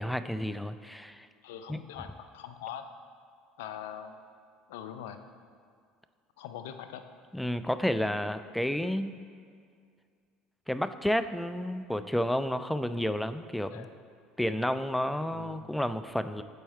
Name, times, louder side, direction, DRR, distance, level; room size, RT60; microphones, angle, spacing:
voice 1, 0.0-1.3 1.7-1.8 7.3-9.2 10.7-13.9 14.4-16.4, equal, 5° left, 11 dB, 0.3 m, -31 dB
voice 2, 1.4-2.8 3.6-4.2 4.7-5.2 6.4-7.0 13.7-13.9 15.2-15.7, left 10 dB, 80° left, 9 dB, 0.4 m, -42 dB
8.0 x 4.5 x 4.3 m, 2.2 s
hypercardioid pair, 75°, 0 cm